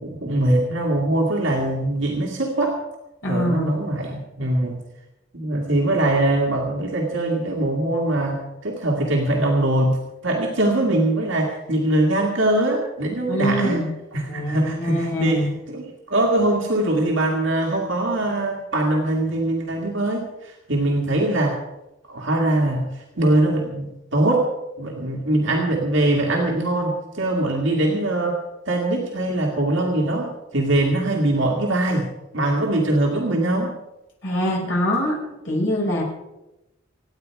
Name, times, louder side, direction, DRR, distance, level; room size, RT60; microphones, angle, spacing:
voice 1, 0.0-2.8 3.3-4.8 5.3-13.8 14.1-21.6 22.1-24.5 24.8-28.4 28.7-32.1 32.3-33.7, right 1 dB, 65° right, -1 dB, 2.1 m, -22 dB
voice 2, 3.2-3.7 13.3-13.9 14.2-15.5 34.2-35.2 35.4-36.0, equal, 70° left, -2 dB, 6.0 m, -23 dB
25.5 x 9.4 x 4.8 m, 0.96 s
head